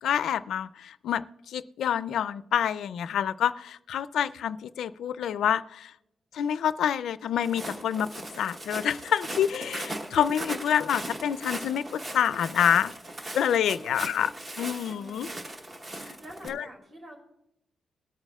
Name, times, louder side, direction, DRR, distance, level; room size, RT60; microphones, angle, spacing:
voice 1, 0.0-5.9 6.3-8.1 8.4-12.9 13.3-14.3 14.6-15.3 16.0-16.2 16.5-16.6, left 9 dB, 75° left, 15 dB, 0.4 m, -27 dB
Walk footsteps, 7.4-16.5, right 1 dB, 20° right, 1.0 m, -39 dB
voice 2, 13.7-14.2 14.9-15.4 16.2-17.2, right 1 dB, 40° right, -1 dB, 2.7 m, -48 dB
21.5 x 9.0 x 2.3 m, 0.85 s
wide cardioid pair, 175°, 0 cm